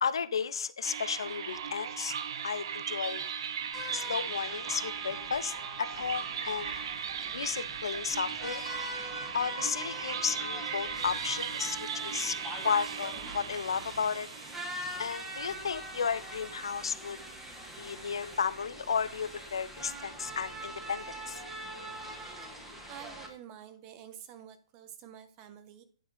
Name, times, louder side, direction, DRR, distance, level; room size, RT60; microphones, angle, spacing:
voice 1, 0.0-2.1 2.4-3.3 3.9-6.7 7.3-8.6 9.3-12.4 12.6-14.3 15.0-17.2 17.8-21.4, left 6 dB, 70° left, 0.6 m, -33 dB
sound 1, 0.8-16.1, right 7 dB, 55° right, 0.8 m, -38 dB
sound 2, 3.7-23.3, right 1 dB, 10° right, 1.8 m, -43 dB
voice 2, 22.1-22.5 22.9-25.8, right 9 dB, 30° right, 1.1 m, -49 dB
9.1 x 4.8 x 4.9 m
hypercardioid pair, 130°, 3 cm